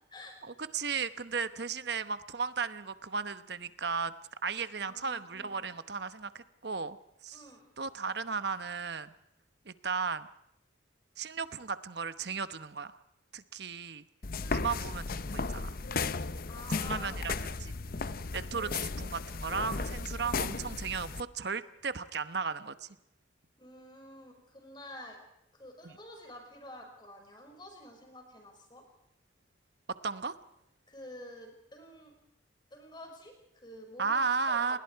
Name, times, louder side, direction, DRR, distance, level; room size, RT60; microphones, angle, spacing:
voice 1, 0.7-4.1 4.4-7.0 7.2-7.4 7.8-9.1 9.7-10.3 11.2-13.0 13.3-14.0 14.5-15.7 16.8-17.3 17.6-18.0 18.3-22.9 30.0-30.3 34.0-34.8, right 5 dB, 55° right, 12 dB, 1.0 m, -35 dB
voice 2, 4.9-5.7 7.3-7.6 14.4-14.7 16.5-17.2 20.2-20.4 23.6-25.2 25.5-28.8 30.9-32.1 32.7-34.8, left 1 dB, 25° left, 3 dB, 5.6 m, -49 dB
sound 1, 14.2-21.2, left 4 dB, 50° left, 0.7 m, -35 dB
29.5 x 20.5 x 4.7 m, 0.79 s
head